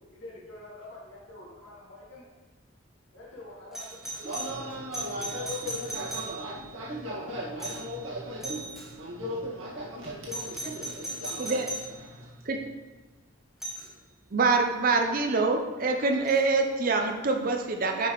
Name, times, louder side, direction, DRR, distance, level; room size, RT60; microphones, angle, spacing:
voice 1, 0.1-2.3 3.1-4.6 5.0-5.5, left 1 dB, 75° left, -7 dB, 2.1 m, -47 dB
Doorbell, 3.7-6.7 7.6-8.0 8.4-8.9 10.3-11.9 13.6-13.9 16.3-16.4, right 2 dB, ahead, 1.3 m, -38 dB
voice 2, 4.1-11.7 12.0-12.4, equal, 80° right, -6 dB, 1.9 m, -37 dB
voice 3, 14.3-18.1, right 3 dB, 45° right, 3 dB, 0.6 m, -25 dB
7.2 x 5.8 x 3.1 m, 1.2 s
head